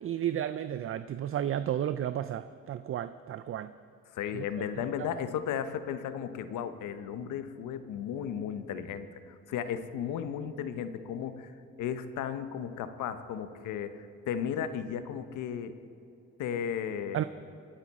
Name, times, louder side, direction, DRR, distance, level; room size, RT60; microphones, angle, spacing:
voice 1, 0.0-3.7 4.3-4.4 5.0-5.1 17.1-17.2, right 10 dB, 45° right, 12 dB, 0.4 m, -32 dB
voice 2, 4.1-11.5 11.8-14.0 14.3-15.7 16.4-17.2, left 8 dB, 85° left, 10 dB, 0.9 m, -35 dB
25.0 x 9.1 x 4.2 m, 2.6 s
cardioid pair, 90°, 30 cm